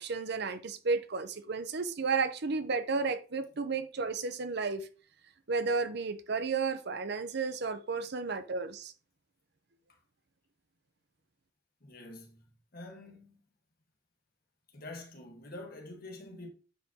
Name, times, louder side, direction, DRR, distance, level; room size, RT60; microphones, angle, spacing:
voice 1, 0.0-4.9 5.5-8.9, right 4 dB, 60° right, 0.7 m, -32 dB
voice 2, 11.8-12.5 12.7-13.4 14.7-16.5, left 2 dB, 50° left, 1.5 m, -46 dB
9.1 x 5.0 x 2.9 m
head